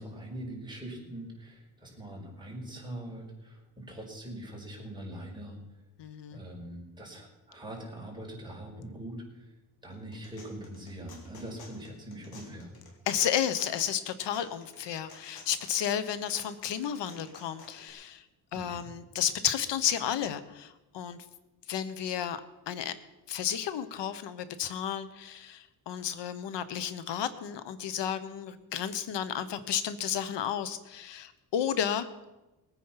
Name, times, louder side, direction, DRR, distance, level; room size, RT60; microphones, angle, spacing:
voice 1, 0.0-5.6 6.3-9.5 9.8-12.7 18.5-18.9, right 1 dB, 10° right, -2 dB, 5.4 m, -42 dB
voice 2, 6.0-6.4 13.1-18.2 18.5-21.2 21.7-22.4 22.7-22.9 23.3-32.1, left 9 dB, 90° left, 12 dB, 1.2 m, -32 dB
sound 1, 9.9-17.9, left 3 dB, 60° left, 3.8 m, -53 dB
20.0 x 9.4 x 5.8 m, 1.0 s
cardioid pair, 110°, 41 cm